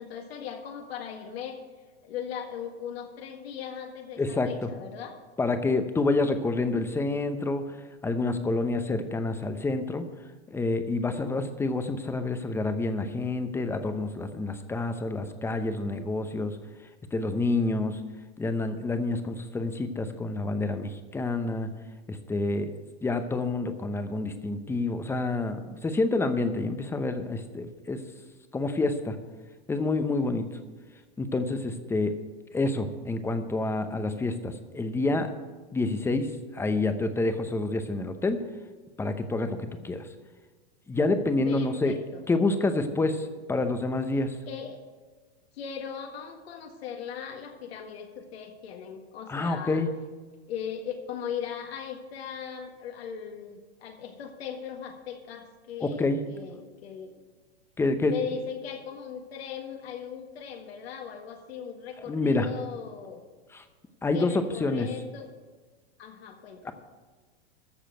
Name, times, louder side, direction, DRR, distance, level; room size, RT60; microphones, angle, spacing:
voice 1, 0.0-1.6 2.0-5.2 41.5-42.2 44.5-44.8 45.5-49.8 50.5-57.2 58.1-63.2 64.1-65.3 66.0-66.7, left 8 dB, 70° left, 3 dB, 1.7 m, -38 dB
voice 2, 4.2-4.5 5.4-7.8 8.0-10.1 10.5-16.6 17.1-18.0 18.4-21.7 22.1-22.7 23.0-28.0 28.5-29.2 29.7-30.5 31.2-32.2 32.5-35.3 35.7-38.4 39.0-40.1 40.9-42.0 42.3-44.4 49.3-49.9 55.8-56.2 57.8-58.1 62.1-62.5 63.5-63.6 64.0-64.9 66.7-66.8, left 2 dB, 10° left, 9 dB, 0.8 m, -28 dB
14.0 x 5.0 x 9.0 m, 1.4 s
hypercardioid pair, 130°, 32 cm